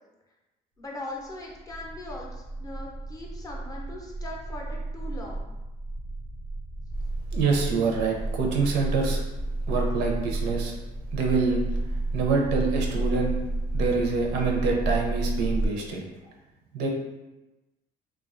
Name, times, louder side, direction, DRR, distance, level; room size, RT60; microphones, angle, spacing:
voice 1, 0.8-5.5, left 1 dB, 20° left, -2 dB, 0.5 m, -40 dB
sound 1, 1.3-15.7, right 2 dB, 80° left, 0.6 m, -31 dB
voice 2, 7.3-9.2 9.7-10.8 11.1-11.6 12.1-13.4 13.7-16.0 16.7-16.9, right 4 dB, 85° right, 1 dB, 0.5 m, -26 dB
2.3 x 2.2 x 2.4 m, 1.0 s
cardioid pair, 110°, 17 cm